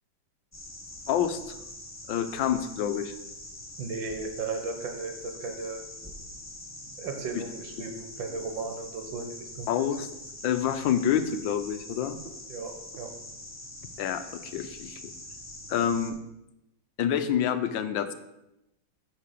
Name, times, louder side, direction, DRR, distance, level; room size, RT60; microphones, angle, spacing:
sound 1, 0.5-16.1, left 1 dB, 20° left, 0.4 m, -44 dB
voice 1, 1.1-1.5 2.1-3.1 7.8-7.9 9.7-10.1 10.4-12.2 14.0-15.0 15.7-16.2 17.0-18.1, left 9 dB, 75° left, 10 dB, 1.4 m, -27 dB
voice 2, 3.8-5.8 7.0-9.7 12.5-13.1, right 4 dB, 75° right, 5 dB, 1.8 m, -35 dB
8.9 x 3.8 x 6.6 m, 0.89 s
omnidirectional pair, 2.2 m